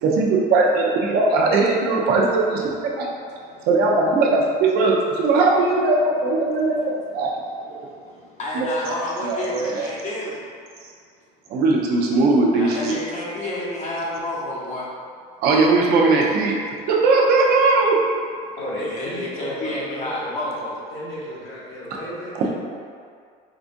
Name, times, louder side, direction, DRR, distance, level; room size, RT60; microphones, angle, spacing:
voice 1, 0.0-3.1 3.7-7.3 7.7-7.8 8.5-8.9 9.2-9.9 11.5-13.0 15.4-16.6 16.9-18.0, right 3 dB, 60° right, -2 dB, 0.6 m, -19 dB
voice 2, 8.4-10.4 12.5-14.8 18.8-20.7 21.2-21.3, left 1 dB, 40° left, -5 dB, 0.9 m, -29 dB
voice 3, 18.6-20.3 20.9-22.5, equal, 65° left, -8 dB, 1.3 m, -34 dB
4.9 x 2.4 x 2.6 m, 2.2 s
cardioid pair, 145°, 18 cm